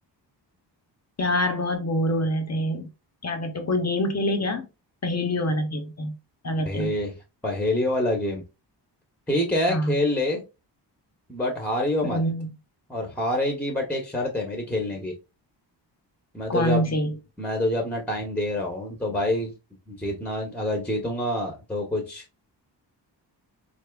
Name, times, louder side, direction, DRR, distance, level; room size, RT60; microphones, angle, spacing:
voice 1, 1.2-2.9 3.2-4.7 5.0-6.1 6.4-6.9 9.7-10.0 12.0-12.5 16.5-17.1, left 1 dB, 40° left, 0.6 m, -25 dB
voice 2, 6.6-7.1 7.4-8.4 9.3-10.4 11.3-12.2 12.9-15.1 16.3-16.8 17.4-19.5 19.9-22.2, left 1 dB, 5° left, 0.8 m, -26 dB
4.1 x 3.4 x 2.3 m
wide cardioid pair, 155°, 43 cm